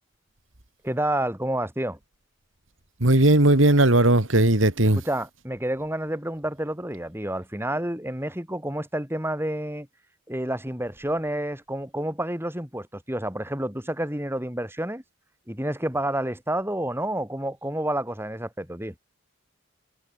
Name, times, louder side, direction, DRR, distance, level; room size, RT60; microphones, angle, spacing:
voice 1, 0.8-2.0 5.0-9.9 10.3-15.0 15.5-18.9, right 1 dB, 10° right, 4.6 m, -29 dB
voice 2, 3.0-5.0, right 1 dB, 75° right, 2.7 m, -18 dB
head